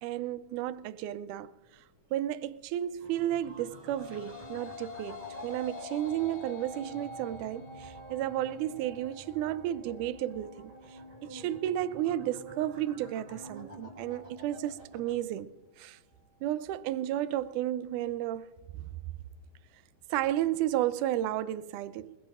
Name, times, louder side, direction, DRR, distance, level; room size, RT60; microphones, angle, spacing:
voice 1, 0.0-1.5 2.1-15.5 15.8-16.0 16.4-18.5 20.1-22.2, right 12 dB, 80° right, 2.0 m, -33 dB
sound 1, 3.0-15.2, right 1 dB, 50° right, 3.8 m, -49 dB
sound 2, 3.5-12.7, left 4 dB, 25° left, 2.8 m, -48 dB
27.0 x 21.0 x 2.5 m
omnidirectional pair, 3.9 m